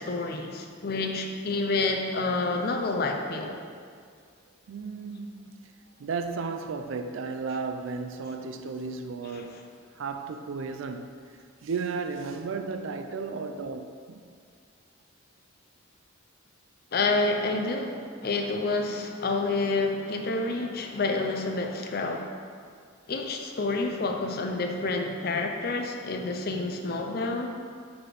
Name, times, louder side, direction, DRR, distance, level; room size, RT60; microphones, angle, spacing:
voice 1, 0.0-3.6 9.3-9.5 16.9-22.3 23.1-27.5, left 3 dB, 50° left, 0.5 m, -28 dB
voice 2, 4.7-5.7 6.0-9.7 9.9-11.1 11.6-13.8 14.1-14.2, right 4 dB, 75° right, 0.4 m, -34 dB
4.7 x 4.1 x 4.9 m
head